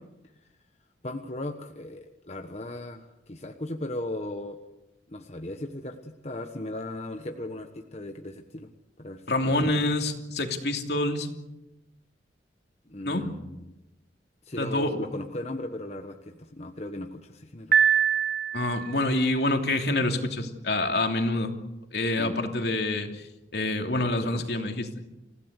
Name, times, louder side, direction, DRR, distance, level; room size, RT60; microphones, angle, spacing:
voice 1, 1.0-4.6 5.1-8.7 9.0-9.7 12.9-13.6 14.4-17.8 22.2-22.4 23.9-24.4, left 1 dB, 35° left, 5 dB, 1.3 m, -37 dB
voice 2, 9.3-11.3 13.0-13.2 14.6-15.1 18.5-21.6 21.9-23.2 23.5-24.9, left 2 dB, 65° left, 4 dB, 2.9 m, -27 dB
Piano, 17.7-19.0, right 8 dB, 55° right, 1.3 m, -23 dB
28.0 x 16.5 x 8.3 m, 0.98 s
head